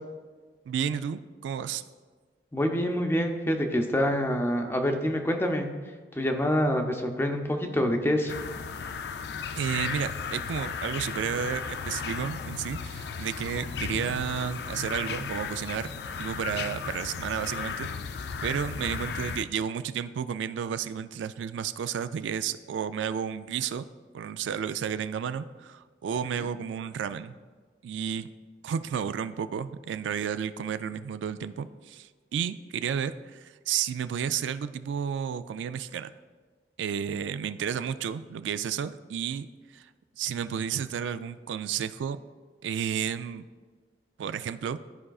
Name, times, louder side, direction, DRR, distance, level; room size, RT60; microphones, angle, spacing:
voice 1, 0.7-1.8 9.6-23.9 24.1-27.4 27.8-28.3 28.6-36.1 36.8-39.5 39.7-39.9 40.2-42.2 42.6-43.4 44.2-44.8, right 8 dB, 90° right, 12 dB, 0.3 m, -32 dB
voice 2, 2.5-5.7 6.2-8.3, equal, 15° left, 4 dB, 0.6 m, -26 dB
sound 1, 8.3-19.4, left 6 dB, 60° left, 0.3 m, -35 dB
12.5 x 4.9 x 2.3 m, 1.4 s
head